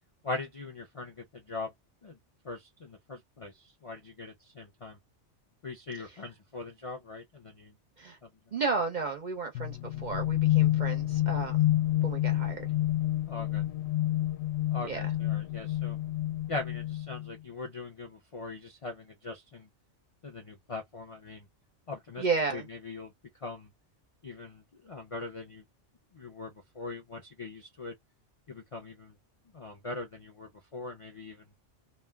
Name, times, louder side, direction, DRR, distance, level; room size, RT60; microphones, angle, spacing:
voice 1, 0.2-1.7 2.0-2.2 2.4-5.0 5.6-7.8 8.2-8.3 13.3-13.7 14.7-16.0 16.5-19.7 20.2-21.5 21.9-22.3 22.5-23.7 24.2-25.6 26.1-28.0 28.5-29.2 29.4-31.5, left 3 dB, 50° left, 0.4 m, -41 dB
voice 2, 8.5-11.6 12.0-12.7 14.9-15.0 22.2-22.6, right 4 dB, 55° right, 0.5 m, -33 dB
sound 1, 9.5-17.3, left 14 dB, 70° left, 0.8 m, -29 dB
2.4 x 2.1 x 3.3 m
omnidirectional pair, 1.3 m